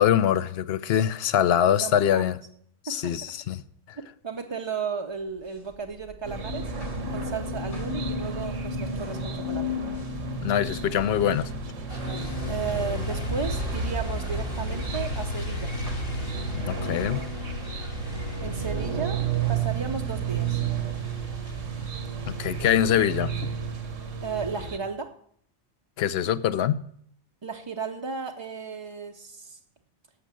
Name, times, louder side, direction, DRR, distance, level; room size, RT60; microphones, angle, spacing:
voice 1, 0.0-2.4 2.8-3.6 10.3-11.5 16.7-17.2 22.3-23.5 26.0-26.8, left 10 dB, 65° left, 0.8 m, -24 dB
voice 2, 1.7-2.4 2.9-3.1 4.0-6.7 7.1-9.7 12.5-15.7 18.4-19.2 19.5-20.6 24.2-25.1 27.4-29.6, right 5 dB, 30° right, 0.5 m, -34 dB
sound 1, 5.1-23.0, right 1 dB, 90° left, 5.0 m, -50 dB
sound 2, 6.2-24.8, right 3 dB, 80° right, 1.5 m, -31 dB
Truck, 11.9-24.2, left 1 dB, 45° left, 1.6 m, -40 dB
11.5 x 6.7 x 7.5 m
omnidirectional pair, 1.3 m